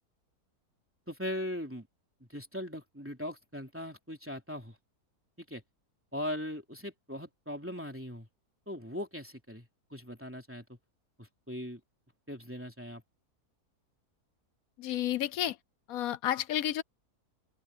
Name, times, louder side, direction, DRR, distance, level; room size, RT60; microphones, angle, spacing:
voice 1, 1.1-1.9 2.2-4.8 5.4-5.6 6.1-8.3 8.7-10.8 11.2-11.8 12.3-13.0, equal, 10° right, 3.1 m, -40 dB
voice 2, 14.8-15.6 15.9-16.8, left 12 dB, 70° left, 1.1 m, -31 dB
open air
omnidirectional pair, 1.7 m